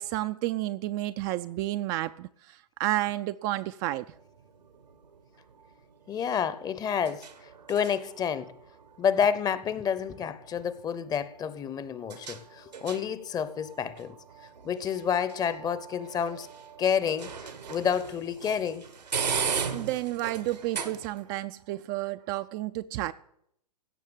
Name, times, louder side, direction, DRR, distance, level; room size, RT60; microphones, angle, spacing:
voice 1, 0.0-4.0 19.7-23.1, right 16 dB, 35° right, 0.4 m, -31 dB
sound 1, 3.9-21.4, right 6 dB, 90° right, 1.7 m, -39 dB
voice 2, 6.1-7.3 7.7-8.5 9.0-14.1 14.6-16.5 16.8-18.9, left 7 dB, 20° left, 0.8 m, -29 dB
16.0 x 5.6 x 8.9 m
hypercardioid pair, 120°, 21 cm